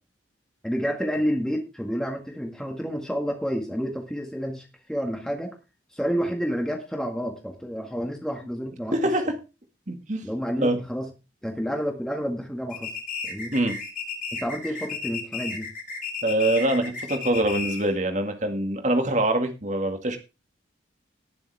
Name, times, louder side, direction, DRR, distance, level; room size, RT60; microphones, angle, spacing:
voice 1, 0.6-5.5 5.9-9.0 10.2-11.1 11.4-13.0 13.2-13.5 14.4-15.7, equal, 5° left, 2 dB, 1.8 m, -29 dB
voice 2, 8.9-9.4 9.9-10.2 10.6-10.8 13.5-13.8 16.2-20.2, right 1 dB, 40° right, 6 dB, 2.0 m, -24 dB
sound 1, 12.7-18.0, left 5 dB, 45° left, 2.9 m, -34 dB
18.5 x 7.1 x 3.5 m, 0.29 s
head